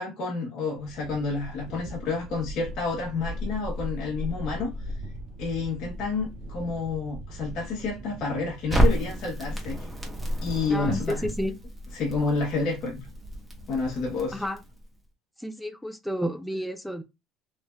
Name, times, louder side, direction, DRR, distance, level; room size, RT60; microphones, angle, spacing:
voice 1, 0.0-4.9 5.4-9.9 10.4-11.3 11.9-13.0 13.7-14.4, left 4 dB, 65° left, 0.9 m, -29 dB
sound 1, 0.8-9.5, left 1 dB, 55° right, 0.6 m, -39 dB
Crackle, 8.7-14.8, right 1 dB, 15° right, 1.1 m, -29 dB
voice 2, 10.7-11.5 14.3-14.6 15.4-17.0, equal, 5° left, 0.4 m, -31 dB
3.1 x 2.5 x 2.2 m
supercardioid pair, 85°, 0 cm